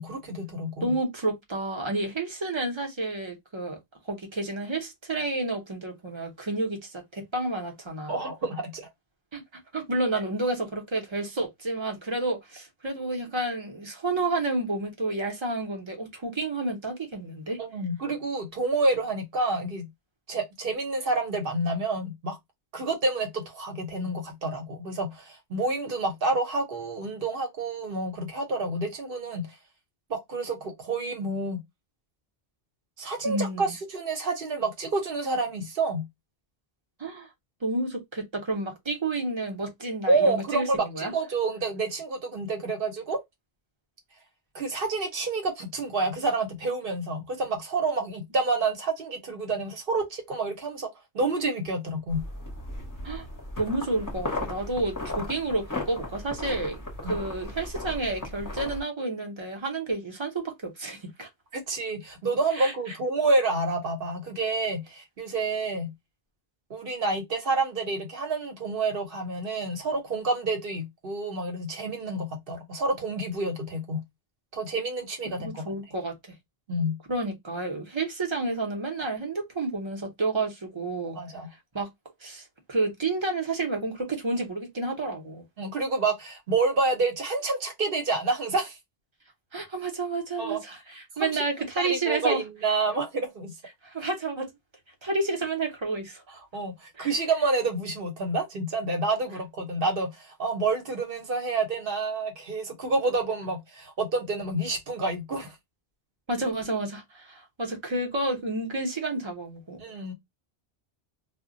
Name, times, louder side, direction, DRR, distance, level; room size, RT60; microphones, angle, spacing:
voice 1, 0.0-0.9 8.1-8.9 17.6-19.9 20.3-22.4 22.7-29.5 30.1-31.6 33.0-36.0 40.1-43.2 44.5-50.9 51.1-52.2 57.0-57.2 61.5-65.9 66.7-74.0 74.5-75.6 76.7-77.0 81.2-81.5 85.6-88.8 90.4-90.6 91.2-91.3 91.8-93.5 96.5-105.5 109.8-110.1, right 3 dB, 65° right, 0.9 m, -28 dB
voice 2, 0.8-3.8 4.1-8.2 9.3-17.6 33.2-33.8 37.0-37.3 37.6-41.1 53.0-53.2 53.6-61.3 62.5-62.7 75.4-76.1 77.1-81.2 81.7-81.9 82.2-85.4 89.5-92.4 93.8-94.5 95.0-96.2 97.0-97.1 106.3-109.8, right 2 dB, 30° right, 0.7 m, -30 dB
sound 1, 52.1-58.8, left 2 dB, 20° left, 0.7 m, -36 dB
2.1 x 2.1 x 3.7 m
omnidirectional pair, 1.0 m